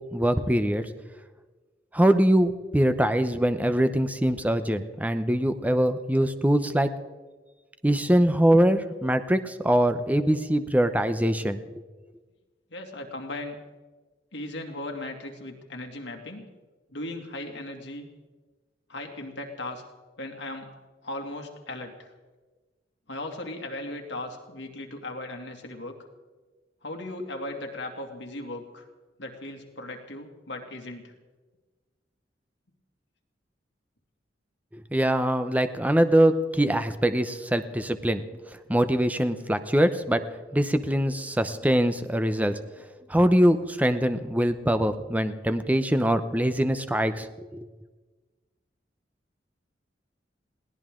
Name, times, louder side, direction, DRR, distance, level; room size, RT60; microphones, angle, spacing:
voice 1, 0.1-0.9 1.9-6.9 7.8-11.8 34.7-38.2 38.7-40.2 40.5-42.6 43.1-47.7, right 1 dB, 10° right, 9 dB, 0.8 m, -23 dB
voice 2, 12.7-13.6 14.3-16.5 16.9-18.1 18.9-19.8 20.2-20.7 21.0-22.1 23.1-26.0 26.8-28.9 29.2-31.1, left 1 dB, 70° left, 2 dB, 2.5 m, -37 dB
21.5 x 17.0 x 3.8 m, 1.3 s
head